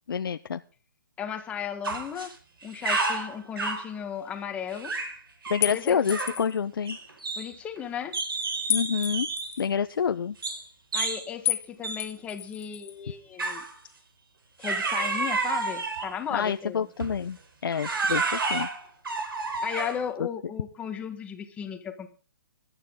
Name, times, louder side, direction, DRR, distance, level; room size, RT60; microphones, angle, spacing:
voice 1, 0.1-0.6 5.5-7.0 8.7-9.3 9.6-10.4 16.3-17.4 17.6-18.7, left 7 dB, 75° left, 9 dB, 0.7 m, -27 dB
voice 2, 1.2-2.3 2.6-4.9 5.6-6.0 7.4-8.1 10.9-13.6 14.6-16.9 19.6-22.1, left 8 dB, 10° left, 5 dB, 1.4 m, -35 dB
sound 1, 1.8-2.3 2.6-3.9 4.7-5.2 5.4-5.6 6.0-6.4 6.9-7.8 8.1-9.6 10.4-10.6 10.9-11.3 11.8-12.1 13.4-13.7 14.6-16.2 17.0-17.2 17.7-20.1, right 3 dB, 75° right, 4.8 m, -30 dB
sound 2, 5.6-6.6 8.7-9.7 11.4-11.7 12.0-12.9, left 13 dB, 35° left, 1.3 m, -31 dB
21.0 x 12.0 x 3.7 m, 0.36 s
hypercardioid pair, 160°, 12 cm